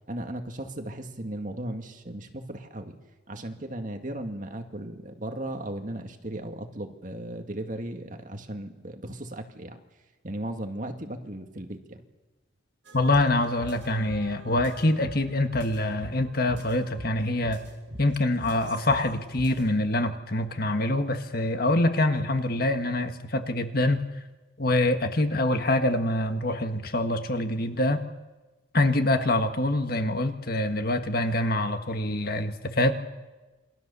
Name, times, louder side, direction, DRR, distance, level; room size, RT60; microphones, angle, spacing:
voice 1, 0.1-3.0 3.3-9.8 10.2-12.0, right 1 dB, 40° right, 5 dB, 2.1 m, -36 dB
sound 1, 12.8-19.7, right 1 dB, 70° right, 5.9 m, -44 dB
voice 2, 12.9-17.6 18.0-24.0 24.6-28.0 28.7-32.9, left 1 dB, 50° left, 7 dB, 1.7 m, -25 dB
28.0 x 22.5 x 6.9 m, 1.2 s
head